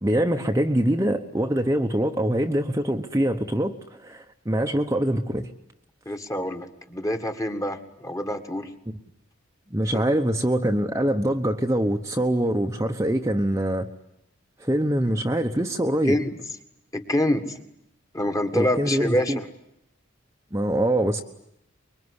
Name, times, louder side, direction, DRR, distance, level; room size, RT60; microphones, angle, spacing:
voice 1, 0.0-5.5 9.7-13.9 14.6-16.2 18.5-19.4 20.5-21.2, right 1 dB, 15° right, 3 dB, 1.0 m, -24 dB
voice 2, 6.1-8.7 9.9-10.2 15.0-15.1 16.1-16.4 16.9-17.6 18.1-19.4, left 1 dB, 15° left, 6 dB, 1.8 m, -26 dB
25.0 x 22.5 x 9.8 m, 0.79 s
head